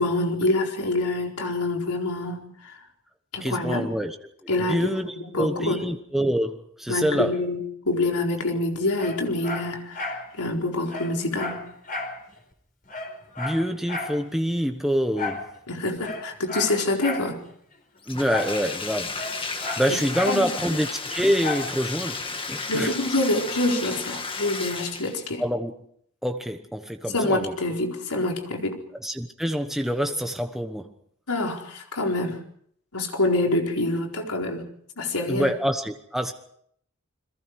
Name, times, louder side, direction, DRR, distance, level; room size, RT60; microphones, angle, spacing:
voice 1, 0.0-2.7 3.3-3.9 4.5-4.9 5.3-5.8 6.9-11.6 15.7-17.4 19.9-20.0 20.3-20.4 22.7-25.4 27.1-28.8 31.3-32.4 32.9-34.7 35.0-35.5, left 2 dB, 90° left, 1 dB, 4.3 m, -26 dB
voice 2, 3.4-4.2 4.4-7.3 13.4-15.4 18.1-19.2 19.5-22.2 22.5-22.9 25.4-25.7 26.2-27.6 29.0-30.9 35.3-36.3, equal, ahead, 5 dB, 1.1 m, -26 dB
Dog, 9.0-10.2 10.6-10.7 10.9-12.2 12.5-12.6 12.9-14.2 15.1-15.5 16.0-17.3 18.3-18.6 18.9-20.4 21.4-21.7 22.2-22.3, left 3 dB, 40° left, 4.7 m, -32 dB
Bathtub (filling or washing), 18.0-25.3, left 4 dB, 25° left, 1.8 m, -33 dB
29.5 x 22.5 x 4.8 m, 0.67 s
head